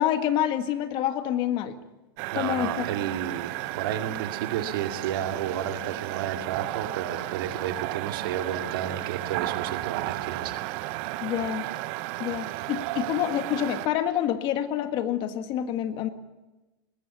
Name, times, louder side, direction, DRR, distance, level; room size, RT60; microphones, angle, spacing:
voice 1, 0.0-1.8 2.3-2.8 11.2-11.7 12.2-16.1, left 11 dB, 45° left, 9 dB, 1.6 m, -27 dB
sound 1, 2.2-13.9, right 19 dB, 50° right, 0.7 m, -33 dB
voice 2, 2.3-10.6, right 10 dB, 75° right, 5 dB, 2.4 m, -32 dB
20.0 x 15.0 x 9.3 m, 1.1 s
supercardioid pair, 140°, 12 cm